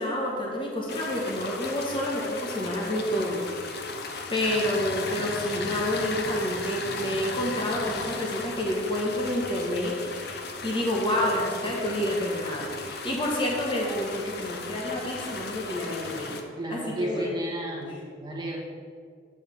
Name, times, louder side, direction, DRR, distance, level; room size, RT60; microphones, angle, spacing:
voice 1, 0.0-3.5 4.3-16.4 16.7-17.4 17.8-17.9, left 1 dB, 25° left, -2 dB, 1.1 m, -29 dB
sound 1, 0.9-16.4, left 3 dB, 60° left, 0.7 m, -36 dB
voice 2, 16.6-17.9 18.2-18.6, right 1 dB, 25° right, -3 dB, 1.1 m, -32 dB
8.7 x 3.4 x 6.7 m, 2.2 s
head